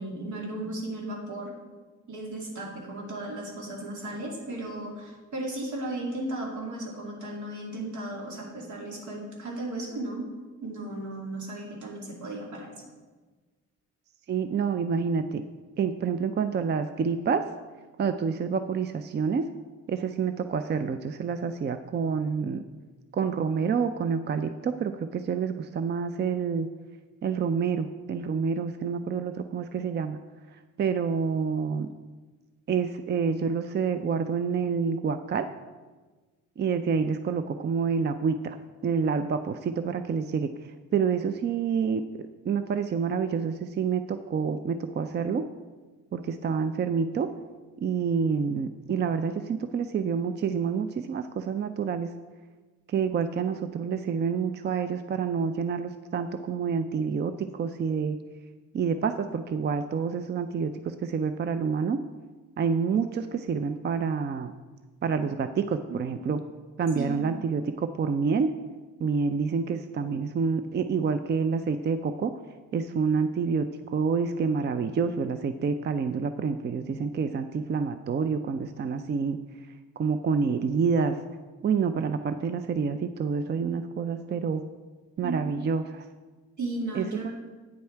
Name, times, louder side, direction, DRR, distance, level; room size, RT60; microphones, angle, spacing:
voice 1, 0.0-1.5 2.1-10.3 10.6-12.7 66.9-67.2 85.2-85.4 86.6-87.3, right 2 dB, 75° right, -2 dB, 2.6 m, -35 dB
voice 2, 14.3-15.4 15.8-17.4 18.0-19.5 19.9-22.6 23.1-26.7 27.2-30.2 30.5-31.9 32.7-35.5 36.6-42.0 42.4-45.5 46.1-47.3 47.8-52.1 52.9-58.2 58.7-62.0 62.6-64.5 65.0-66.4 66.8-68.5 69.0-72.3 72.7-79.4 80.0-81.2 81.6-84.6 85.2-86.1 86.9-87.3, right 6 dB, 35° right, 10 dB, 0.4 m, -28 dB
8.8 x 7.0 x 4.5 m, 1.3 s
cardioid pair, 90°, 30 cm